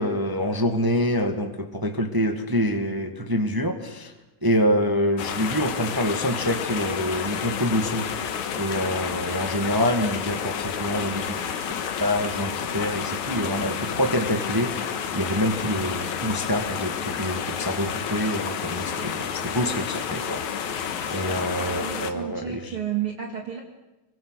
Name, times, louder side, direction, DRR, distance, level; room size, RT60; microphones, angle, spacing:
voice 1, 0.0-4.1 4.4-8.0 8.5-11.4 12.0-20.8 21.1-22.7, equal, 10° right, 5 dB, 1.2 m, -26 dB
sound 1, 5.2-22.1, left 7 dB, 65° left, 2.8 m, -30 dB
voice 2, 21.6-23.6, right 9 dB, 45° right, 1 dB, 2.8 m, -32 dB
27.0 x 23.5 x 6.5 m, 1.0 s
omnidirectional pair, 3.7 m